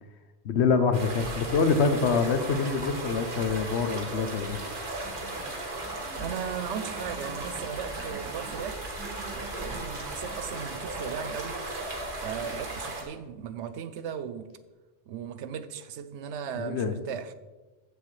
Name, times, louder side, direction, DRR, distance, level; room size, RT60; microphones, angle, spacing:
voice 1, 0.4-4.6 16.6-17.0, left 5 dB, 80° left, 1.1 m, -25 dB
sound 1, 0.9-13.0, right 2 dB, 50° right, 1.6 m, -36 dB
sound 2, 4.3-11.2, right 3 dB, 5° left, 3.6 m, -48 dB
voice 2, 6.2-9.0 9.3-11.6 12.2-14.5 15.1-17.3, right 8 dB, 80° right, 1.0 m, -37 dB
15.0 x 6.7 x 3.2 m
omnidirectional pair, 1.1 m